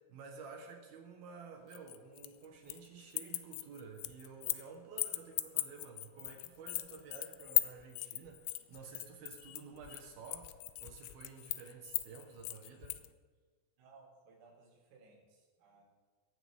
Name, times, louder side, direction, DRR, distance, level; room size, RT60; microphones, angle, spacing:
voice 1, 0.0-10.5 10.8-13.0, right 5 dB, 60° right, 2 dB, 2.8 m, -51 dB
sound 1, 1.7-2.9 3.1-4.7 5.0-13.1, left 19 dB, 85° left, 3.3 m, -37 dB
voice 2, 13.8-15.8, right 4 dB, 85° right, -2 dB, 6.5 m, -61 dB
21.0 x 15.0 x 3.8 m, 1.4 s
omnidirectional pair, 6.0 m